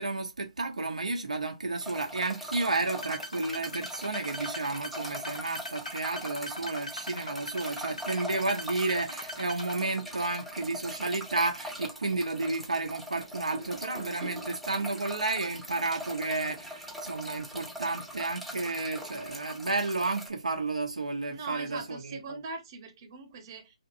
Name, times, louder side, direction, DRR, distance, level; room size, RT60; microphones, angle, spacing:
voice 1, 0.0-22.4, right 3 dB, 80° right, 0.5 m, -32 dB
sound 1, 1.8-20.3, equal, ahead, 0.4 m, -42 dB
sound 2, 3.0-9.8, left 1 dB, 85° left, 0.8 m, -41 dB
voice 2, 13.5-14.5 21.3-23.7, right 3 dB, 35° right, 0.8 m, -41 dB
2.7 x 2.5 x 2.5 m
figure-of-eight pair, 135°, 4 cm